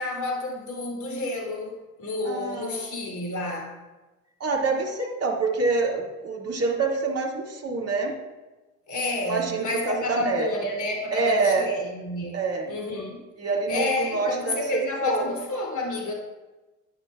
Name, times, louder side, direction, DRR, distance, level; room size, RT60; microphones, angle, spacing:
voice 1, 0.0-3.8 8.9-12.4 12.7-13.2 13.7-16.1, left 2 dB, 45° left, -1 dB, 3.1 m, -30 dB
voice 2, 2.2-2.9 4.4-8.2 9.2-10.5 11.1-11.7 12.3-12.7 13.4-14.6 15.0-15.3, right 3 dB, 35° right, 0 dB, 2.3 m, -26 dB
11.0 x 9.8 x 2.4 m, 1.1 s
figure-of-eight pair, 50°, 42 cm